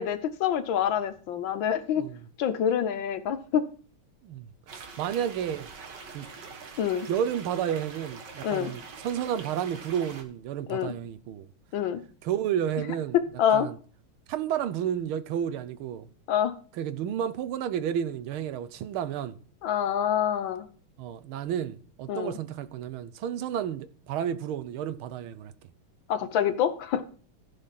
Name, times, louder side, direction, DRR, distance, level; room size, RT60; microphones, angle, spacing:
voice 1, 0.0-2.0 2.4-3.7 6.8-7.1 8.4-8.7 10.7-10.9 11.7-12.0 13.1-13.7 16.3-16.5 19.6-20.7 22.1-22.4 26.1-27.0, left 9 dB, 70° left, 1.6 m, -26 dB
voice 2, 4.2-5.7 6.1-6.3 7.1-11.5 12.2-13.2 13.5-13.8 14.3-16.1 16.7-19.4 21.0-25.5, right 9 dB, 85° right, 1.7 m, -31 dB
sound 1, 4.7-10.2, right 4 dB, 60° right, 2.0 m, -44 dB
15.0 x 5.1 x 5.8 m
omnidirectional pair, 2.3 m